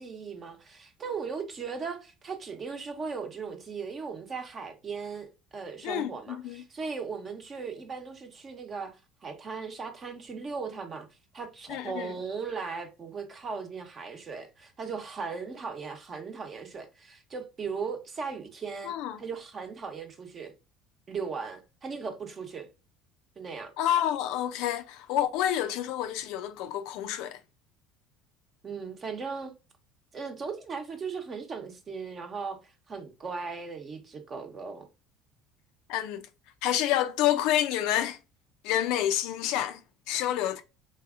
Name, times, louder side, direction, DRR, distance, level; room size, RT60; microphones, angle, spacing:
voice 1, 0.0-5.3 5.5-11.1 11.3-18.9 19.2-20.5 21.1-22.7 23.4-23.7 28.6-29.5 30.1-34.8, right 5 dB, 40° right, 0.8 m, -37 dB
voice 2, 5.8-6.6 11.7-12.1 18.8-19.2 23.8-27.4 35.9-36.3 36.6-38.2 38.6-39.8 40.1-40.6, left 11 dB, 70° left, 0.4 m, -28 dB
3.4 x 2.7 x 2.4 m
hypercardioid pair, 80°, 0 cm